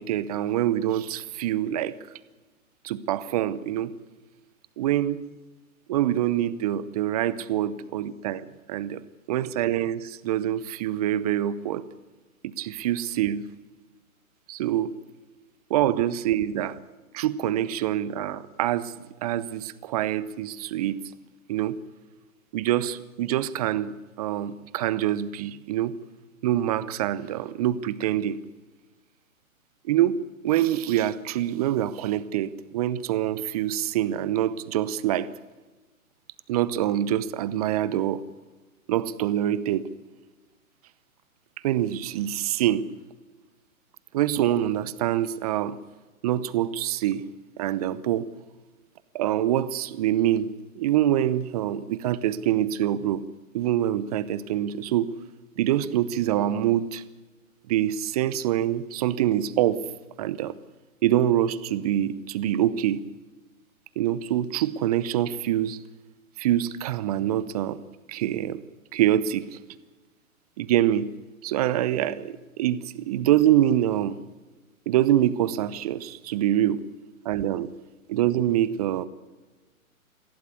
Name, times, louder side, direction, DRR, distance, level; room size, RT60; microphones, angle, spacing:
voice 1, 0.0-2.0 2.8-3.9 4.8-5.2 5.9-9.0 9.3-11.8 12.6-13.5 14.5-14.9 15.7-16.8 17.1-18.9 19.2-21.0 21.5-21.8 22.5-25.9 26.4-28.4 29.9-35.3 36.5-38.2 38.9-39.9 41.6-42.9 44.1-45.8 46.2-47.2 47.6-48.3 49.1-53.2 53.5-55.1 55.6-57.0 57.7-59.8 60.2-60.6 61.0-63.0 64.0-65.8 66.4-67.8 68.1-68.6 68.9-69.5 70.6-71.1 71.4-74.2 74.9-76.8 77.2-77.7 78.1-79.1, right 12 dB, 25° right, 17 dB, 0.8 m, -25 dB
23.0 x 16.0 x 8.5 m, 1.2 s
figure-of-eight pair, 130°, 43 cm